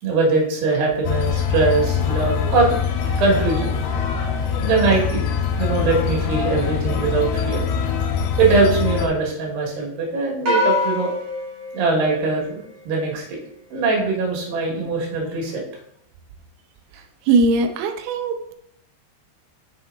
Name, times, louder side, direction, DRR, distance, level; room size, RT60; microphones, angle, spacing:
voice 1, 0.0-2.8 3.2-3.7 4.5-7.7 8.4-11.1 11.7-12.6 12.9-13.4 13.7-15.6, right 3 dB, 65° right, -1 dB, 3.7 m, -21 dB
sound 1, 1.0-9.1, left 7 dB, 80° left, 3.3 m, -23 dB
sound 2, 10.5-13.0, left 3 dB, 35° right, 1.8 m, -25 dB
voice 2, 17.3-18.5, right 3 dB, 85° right, 5 dB, 2.2 m, -19 dB
6.8 x 6.4 x 3.9 m, 0.72 s
omnidirectional pair, 5.4 m